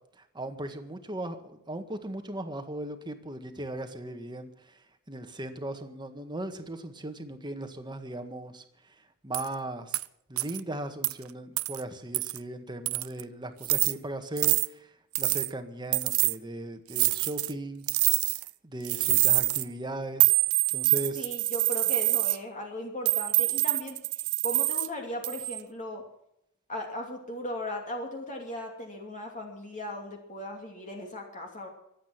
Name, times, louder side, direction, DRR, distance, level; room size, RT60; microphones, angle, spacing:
voice 1, 0.2-4.8 5.1-8.6 9.0-10.0 10.3-18.0 18.6-20.3 20.7-21.3, right 1 dB, 20° right, 8 dB, 1.7 m, -38 dB
sound 1, 9.3-9.5 9.9-10.0 10.4-10.6 11.0-11.1 11.6-11.8 12.1-12.4 12.9-13.2 13.6-13.9 14.4-14.7 15.2-15.5 15.9-16.4 16.9-17.5 17.9-18.5 18.8-19.6 20.2-22.4 23.1-24.9 25.2-25.6, right 20 dB, 65° right, 0.6 m, -25 dB
voice 2, 21.1-24.0 24.4-26.0 26.7-31.7, left 1 dB, 35° left, 1 dB, 2.6 m, -37 dB
24.0 x 8.8 x 6.0 m, 0.80 s
head